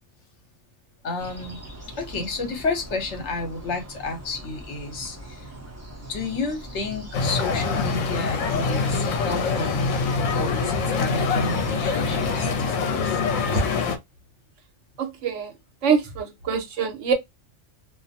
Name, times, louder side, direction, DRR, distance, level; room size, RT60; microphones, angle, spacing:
voice 1, 1.0-1.6 2.0-5.5 6.0-9.9 10.3-13.2, left 3 dB, 65° left, 1.2 m, -31 dB
sound 1, 1.2-12.7, right 1 dB, 15° right, 0.6 m, -41 dB
sound 2, 7.1-14.0, left 4 dB, 85° left, 1.0 m, -24 dB
voice 2, 15.0-15.5 15.8-17.1, right 6 dB, 70° right, 1.0 m, -24 dB
2.5 x 2.0 x 2.7 m
omnidirectional pair, 1.3 m